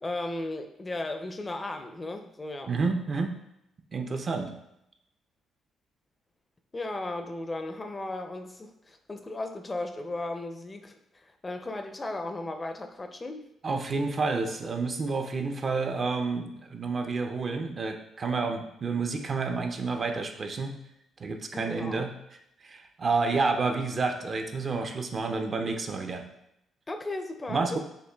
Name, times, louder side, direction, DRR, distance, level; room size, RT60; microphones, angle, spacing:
voice 1, 0.0-2.8 6.7-13.4 21.5-22.1 26.9-27.8, left 2 dB, 25° left, 6 dB, 0.4 m, -36 dB
voice 2, 2.7-3.3 3.9-4.6 13.6-20.8 21.2-22.1 22.6-26.3 27.5-27.8, right 4 dB, 45° right, 5 dB, 0.5 m, -29 dB
6.6 x 2.4 x 2.2 m, 0.82 s
supercardioid pair, 70°, 0 cm